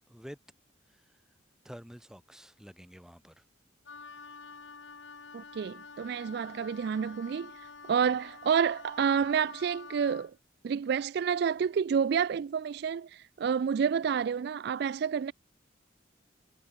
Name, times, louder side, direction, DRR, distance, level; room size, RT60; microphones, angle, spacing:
voice 1, 0.1-0.4 0.9-1.2 1.6-3.5, equal, 5° right, 2.2 m, -49 dB
Wind instrument woodwind instrument, 3.9-10.3, left 4 dB, 80° left, 3.6 m, -48 dB
voice 2, 5.3-7.5 7.9-10.3 10.6-15.3, right 7 dB, 60° right, 0.3 m, -29 dB
head